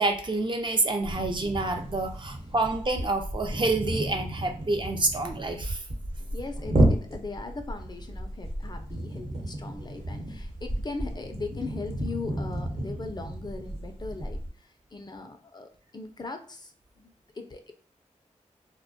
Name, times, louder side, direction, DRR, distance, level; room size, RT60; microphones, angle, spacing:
voice 1, 0.0-5.8, right 2 dB, 35° right, 4 dB, 0.5 m, -28 dB
sound 1, 1.0-14.5, right 1 dB, 55° right, 0.9 m, -32 dB
voice 2, 6.3-17.7, left 3 dB, 35° left, 5 dB, 0.4 m, -39 dB
2.2 x 2.1 x 2.6 m, 0.43 s
cardioid pair, 40°, 13 cm